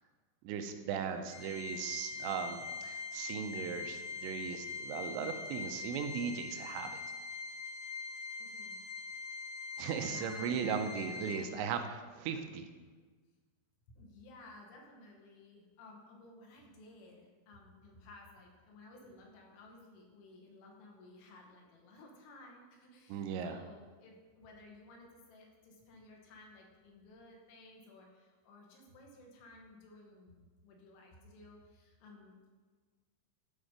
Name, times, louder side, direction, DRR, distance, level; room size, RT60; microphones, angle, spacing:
voice 1, 0.4-7.0 9.8-12.7 23.1-23.6, right 7 dB, 80° right, 6 dB, 2.9 m, -38 dB
Organ, 1.3-11.9, left 4 dB, 70° left, 2.1 m, -43 dB
voice 2, 8.4-8.8 9.7-11.0 13.9-30.4 30.6-32.5, left 2 dB, 90° left, 0 dB, 3.7 m, -56 dB
12.0 x 4.4 x 5.0 m, 1.4 s
omnidirectional pair, 5.3 m